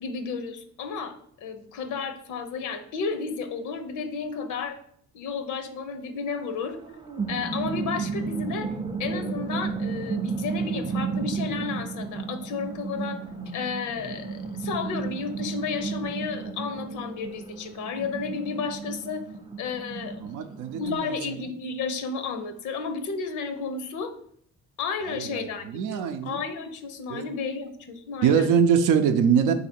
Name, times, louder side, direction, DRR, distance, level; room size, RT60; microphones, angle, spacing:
voice 1, 0.0-4.8 5.1-6.8 7.3-8.7 9.0-13.2 13.5-19.2 19.6-24.2 24.8-28.5, left 5 dB, 80° left, 9 dB, 0.6 m, -32 dB
sound 1, 6.7-21.0, right 5 dB, 15° right, 0.4 m, -33 dB
voice 2, 20.2-21.0 25.7-26.4 27.1-27.3 28.2-29.5, right 7 dB, 90° right, 8 dB, 0.5 m, -22 dB
3.9 x 2.7 x 4.2 m, 0.65 s
cardioid pair, 90°, 30 cm